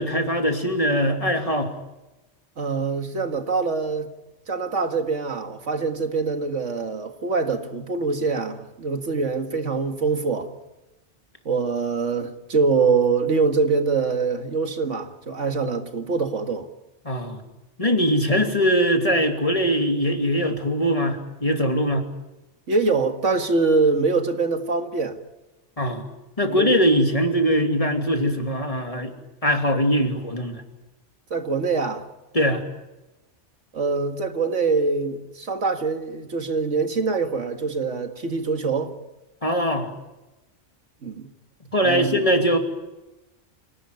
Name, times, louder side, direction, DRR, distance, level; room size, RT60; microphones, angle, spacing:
voice 1, 0.0-1.7 17.0-17.4 17.8-22.1 25.8-26.0 26.4-29.1 29.4-30.6 32.3-32.6 39.4-39.9 41.7-42.6, equal, 30° left, 2.8 m, -21 dB
voice 2, 2.6-4.1 4.5-10.5 11.5-16.7 22.7-25.2 26.5-26.7 31.3-32.0 33.7-38.9 41.0-41.3 41.8-42.2, right 4 dB, 85° right, 2.2 m, -24 dB
26.5 x 18.0 x 9.5 m
omnidirectional pair, 1.2 m